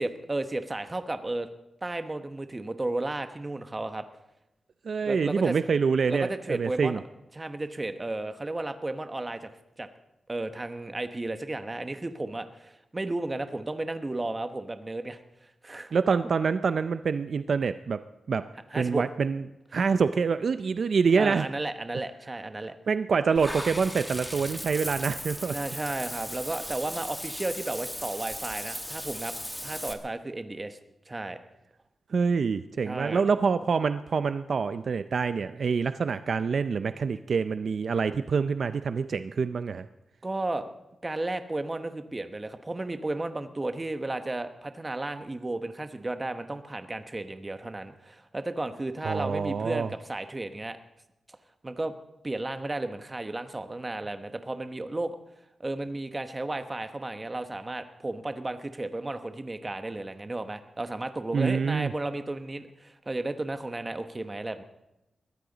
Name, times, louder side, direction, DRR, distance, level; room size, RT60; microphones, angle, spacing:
voice 1, 0.0-1.5 1.8-4.0 5.0-5.5 6.1-7.0 7.3-9.5 9.8-9.9 10.3-16.0 18.7-19.1 21.2-22.8 25.5-29.3 29.6-30.8 31.1-31.4 32.8-33.2 40.2-40.7 41.0-50.8 51.6-51.9 52.2-55.2 55.6-64.6, right 2 dB, 20° right, 9 dB, 1.0 m, -33 dB
voice 2, 4.9-7.0 15.9-18.0 18.3-18.4 18.8-19.4 19.7-21.5 22.9-25.6 32.1-39.9 49.0-49.9 61.3-61.9, right 5 dB, 55° right, 11 dB, 0.5 m, -26 dB
Water / Bathtub (filling or washing), 23.3-29.9, equal, 5° left, 1.2 m, -37 dB
22.0 x 15.0 x 4.0 m, 0.92 s
wide cardioid pair, 165°, 0 cm